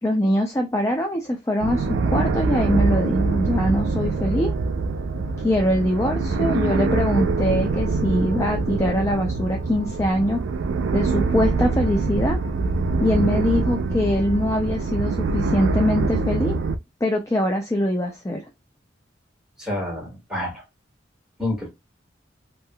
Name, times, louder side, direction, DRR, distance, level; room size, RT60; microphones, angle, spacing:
voice 1, 0.0-4.6 5.4-10.4 10.9-12.4 13.0-16.6 17.0-18.4, left 1 dB, 15° left, 0.4 m, -23 dB
sound 1, 1.6-16.8, right 3 dB, 85° right, 0.4 m, -24 dB
voice 2, 19.6-20.6 21.4-21.7, left 1 dB, 5° right, 1.7 m, -28 dB
3.6 x 2.4 x 2.2 m
head